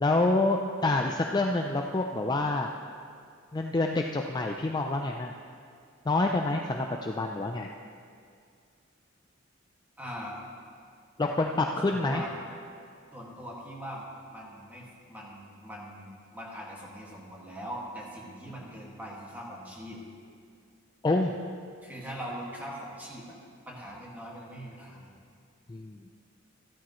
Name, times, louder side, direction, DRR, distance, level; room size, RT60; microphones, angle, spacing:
voice 1, 0.0-2.7 3.5-5.3 6.1-7.7 11.2-12.2 21.0-21.3 25.7-26.0, left 2 dB, 20° left, 2 dB, 0.4 m, -27 dB
voice 2, 10.0-10.4 11.8-12.3 13.1-20.0 21.8-23.4 23.7-25.1, equal, 10° right, -4 dB, 2.0 m, -41 dB
13.5 x 13.0 x 3.1 m, 2.3 s
head